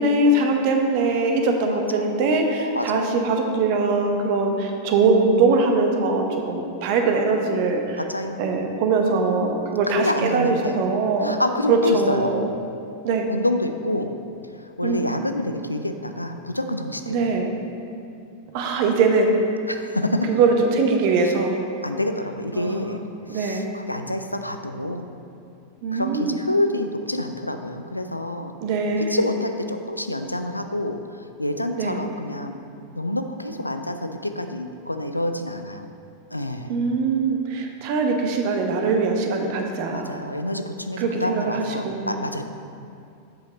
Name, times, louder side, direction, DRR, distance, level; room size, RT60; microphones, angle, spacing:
voice 1, 0.0-8.0 8.4-11.4 11.7-12.5 13.0-13.3 14.8-15.0 17.1-17.5 18.5-19.3 20.3-21.6 22.5-22.9 23.3-23.7 25.8-26.4 28.6-29.2 31.8-32.0 36.7-40.1 41.0-42.2, right 3 dB, 45° right, 3 dB, 0.8 m, -22 dB
voice 2, 1.6-2.1 2.6-3.3 8.0-8.5 8.9-9.3 9.9-10.8 11.2-12.4 13.3-14.1 14.6-17.4 19.7-20.3 21.2-21.3 21.8-25.1 25.9-28.5 29.0-31.0 31.4-32.6 33.0-35.9 36.3-36.7 39.9-42.4, left 1 dB, 85° left, 7 dB, 0.4 m, -27 dB
7.6 x 5.7 x 4.0 m, 2.5 s
figure-of-eight pair, 90°, 0 cm